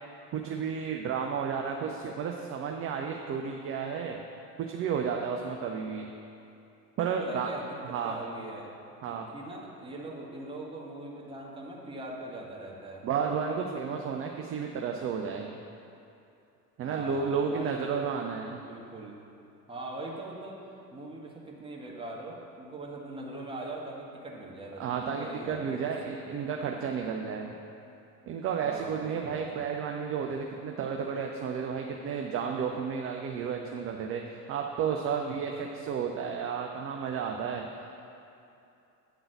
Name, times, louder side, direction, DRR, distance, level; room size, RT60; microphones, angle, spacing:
voice 1, 0.3-4.2 4.7-6.1 7.0-7.5 7.9-8.2 9.0-9.3 13.0-15.5 16.8-18.6 24.8-27.5 28.3-37.7, right 6 dB, 30° right, 2 dB, 0.5 m, -32 dB
voice 2, 7.2-7.8 8.0-8.7 9.1-13.1 16.8-18.2 18.6-19.2 19.7-25.8 28.6-29.6, right 2 dB, 10° right, -3 dB, 1.5 m, -41 dB
9.0 x 3.9 x 6.7 m, 2.7 s
figure-of-eight pair, 75°, 49 cm